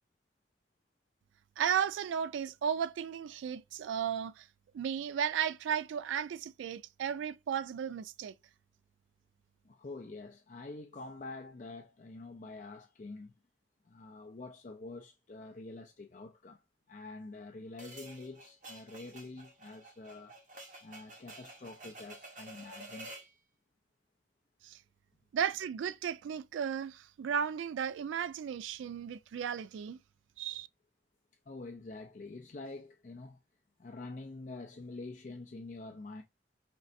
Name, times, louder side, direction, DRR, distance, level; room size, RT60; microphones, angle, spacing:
voice 1, 1.6-4.5 4.7-8.3 24.6-24.8 25.3-30.0 30.4-30.7, right 8 dB, 85° right, 0.3 m, -34 dB
voice 2, 9.6-13.3 13.8-16.6 16.9-20.4 20.8-23.1 31.5-33.4 33.8-36.2, left 3 dB, 40° left, 0.4 m, -46 dB
sound 1, 17.8-23.3, right 1 dB, 40° right, 0.9 m, -50 dB
5.1 x 3.1 x 2.6 m
head